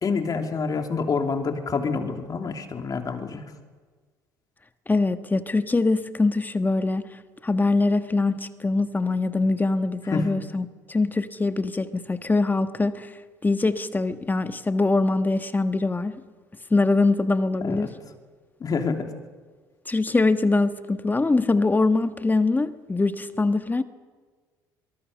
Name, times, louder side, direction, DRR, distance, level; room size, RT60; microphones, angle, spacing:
voice 1, 0.0-3.4 10.1-10.3 17.6-17.9 18.6-19.1, left 5 dB, 40° left, 4 dB, 3.0 m, -27 dB
voice 2, 4.9-7.1 7.4-13.1 13.4-16.1 16.7-17.9 19.9-23.8, left 3 dB, 20° left, 10 dB, 1.3 m, -23 dB
23.5 x 21.5 x 6.8 m, 1.4 s
hypercardioid pair, 60°, 10 cm